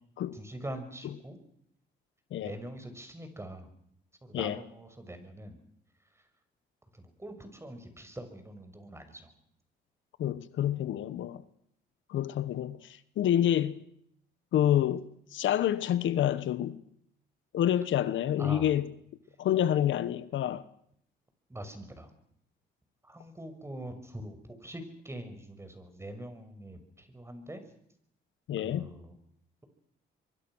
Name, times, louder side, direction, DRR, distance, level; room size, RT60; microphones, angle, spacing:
voice 1, 0.3-1.4 2.4-3.7 4.2-5.6 6.2-6.3 6.9-9.3 18.4-18.7 21.5-22.1 23.0-27.6 28.6-29.1, right 1 dB, 15° right, 6.1 m, -43 dB
voice 2, 10.2-11.4 12.1-13.8 14.5-16.8 17.5-18.9 19.4-20.6 28.5-28.9, left 11 dB, 75° left, 1.2 m, -28 dB
25.0 x 23.5 x 6.3 m
cardioid pair, 90°, 20 cm